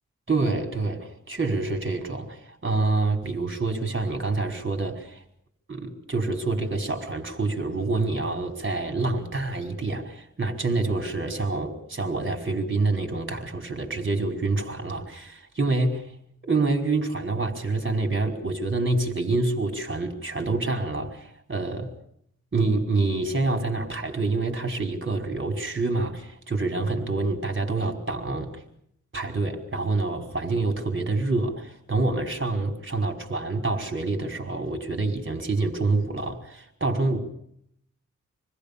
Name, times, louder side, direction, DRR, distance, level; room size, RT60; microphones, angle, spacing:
voice 1, 0.3-5.2 5.7-16.1 16.5-21.9 22.5-28.6 29.1-37.2, right 3 dB, 40° right, 5.3 m, -27 dB
28.0 x 21.0 x 7.0 m
wide cardioid pair, 115°, 30 cm